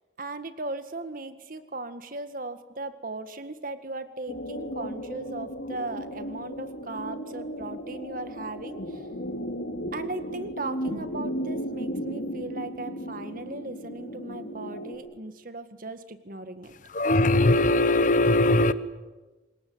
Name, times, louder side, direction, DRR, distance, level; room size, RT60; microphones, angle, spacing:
voice 1, 0.2-9.1 9.9-16.8, right 2 dB, 50° right, 10 dB, 1.9 m, -37 dB
sound 1, 4.3-14.9, equal, 85° left, 3.8 m, -35 dB
voice 2, 16.9-18.7, left 2 dB, 45° left, 13 dB, 1.0 m, -20 dB
25.5 x 21.0 x 9.6 m, 1.2 s
head